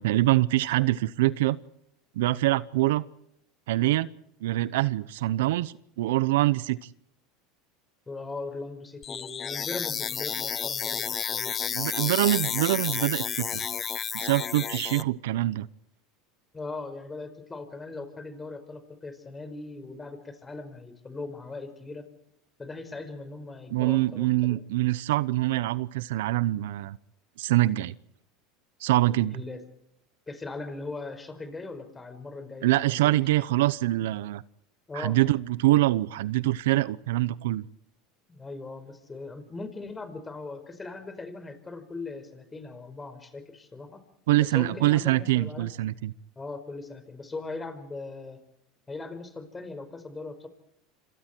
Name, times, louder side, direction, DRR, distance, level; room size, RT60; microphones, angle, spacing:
voice 1, 0.0-1.6 2.1-3.1 3.7-4.1 4.4-6.8 11.7-13.7 14.1-15.7 23.7-27.0 27.4-27.9 28.8-29.4 32.6-34.4 34.9-37.7 44.3-46.1, right 17 dB, 80° right, 0.8 m, -24 dB
voice 2, 8.1-11.9 16.5-22.1 22.6-24.7 29.3-29.6 30.3-33.2 34.9-35.2 38.3-44.0 44.4-45.7 46.4-48.4 48.9-50.5, left 3 dB, 20° left, 5.2 m, -39 dB
sound 1, 9.0-15.0, left 8 dB, 35° left, 0.8 m, -31 dB
27.5 x 26.0 x 4.6 m
supercardioid pair, 100°, 0 cm